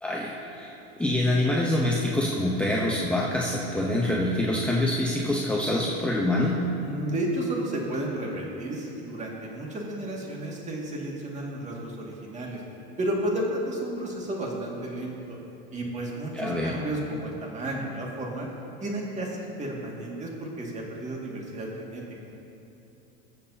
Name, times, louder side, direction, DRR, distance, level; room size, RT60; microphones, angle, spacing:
voice 1, 0.0-6.6 16.3-16.8, left 1 dB, 5° left, -3 dB, 0.8 m, -26 dB
voice 2, 6.8-12.6 13.0-15.4 15.7-18.5 18.8-22.0, right 1 dB, 25° right, -2 dB, 2.1 m, -32 dB
21.0 x 7.4 x 2.8 m, 3.0 s
supercardioid pair, 120°, 29 cm